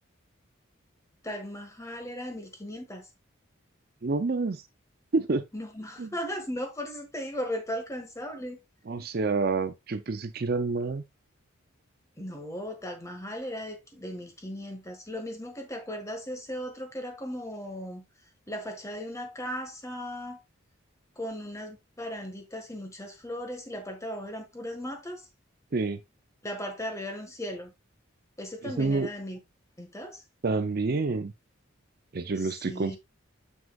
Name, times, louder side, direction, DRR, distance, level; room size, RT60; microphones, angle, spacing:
voice 1, 1.2-3.1 5.5-8.6 12.2-18.0 18.5-20.4 21.2-25.3 26.4-27.7 28.4-29.4 29.8-30.2 32.4-33.0, equal, 15° left, 1.7 m, -37 dB
voice 2, 4.0-4.6 5.1-5.4 6.0-6.1 8.9-11.0 25.7-26.0 28.6-29.1 30.4-31.3 32.1-33.0, right 3 dB, 45° right, 0.5 m, -28 dB
7.3 x 6.1 x 2.4 m
head